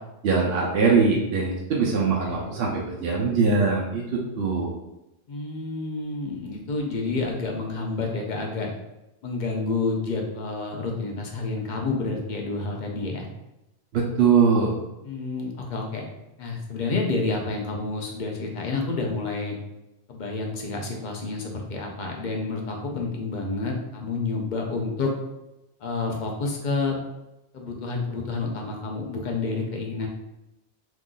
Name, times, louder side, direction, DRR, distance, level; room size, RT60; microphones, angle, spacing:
voice 1, 0.2-4.8 13.9-14.7, right 5 dB, 70° right, -3 dB, 0.8 m, -22 dB
voice 2, 5.3-8.7 9.2-13.3 15.0-16.0 16.4-19.6 20.1-25.1 25.8-27.0 27.5-30.1, left 3 dB, 50° left, 1 dB, 0.7 m, -29 dB
2.9 x 2.4 x 3.7 m, 0.93 s
omnidirectional pair, 1.1 m